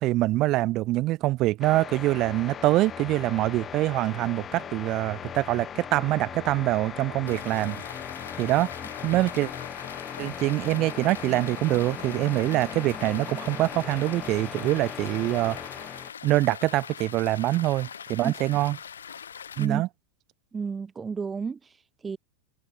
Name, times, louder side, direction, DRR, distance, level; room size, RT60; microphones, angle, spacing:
voice 1, 0.0-7.8 8.4-8.7 9.0-9.5 10.2-15.6 16.2-18.8 19.6-19.9, right 17 dB, 35° right, 2.5 m, -25 dB
sound 1, 1.6-16.1, left 8 dB, 25° left, 2.5 m, -39 dB
sound 2, 7.2-19.7, left 7 dB, 70° left, 2.0 m, -42 dB
voice 2, 20.5-22.2, right 5 dB, 15° right, 1.3 m, -32 dB
figure-of-eight pair, 90°, 0 cm